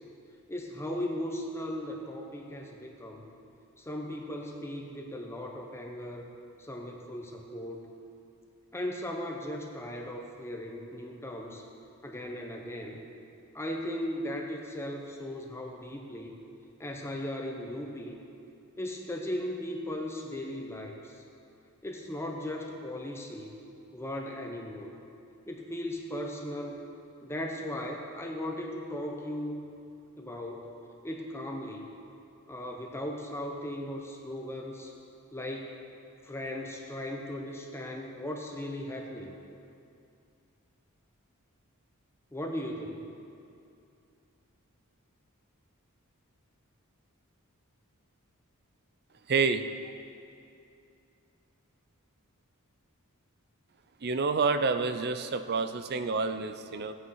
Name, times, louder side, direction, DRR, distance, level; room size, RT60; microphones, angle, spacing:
voice 1, 0.5-3.2 3.8-6.3 6.6-7.9 8.7-11.6 12.0-13.0 13.5-16.3 16.8-18.2 18.8-21.1 21.8-23.5 23.9-24.9 25.5-26.8 27.2-29.7 30.2-30.7 31.0-31.9 32.5-34.9 35.3-35.7 36.2-39.3 42.3-43.1, left 1 dB, 10° left, 1 dB, 0.9 m, -37 dB
voice 2, 49.3-49.6 54.0-56.9, right 4 dB, 50° right, 10 dB, 0.6 m, -28 dB
17.0 x 9.0 x 4.7 m, 2.6 s
head